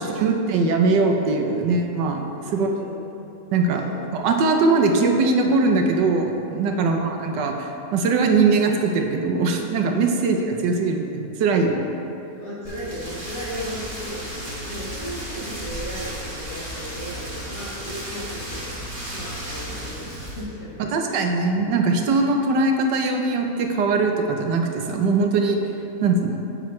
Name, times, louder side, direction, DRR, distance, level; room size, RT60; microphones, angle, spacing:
voice 1, 0.1-2.7 3.5-3.8 4.1-11.9 20.8-25.6 26.0-26.4, right 3 dB, 85° right, 3 dB, 1.4 m, -21 dB
voice 2, 2.4-3.0 3.8-4.0 6.7-7.0 10.1-10.6 12.4-21.2 25.6-25.7, equal, 70° left, -7 dB, 2.4 m, -36 dB
Rain, 12.6-20.4, equal, 30° right, 2.0 m, -34 dB
9.0 x 7.8 x 3.2 m, 2.8 s
omnidirectional pair, 1.8 m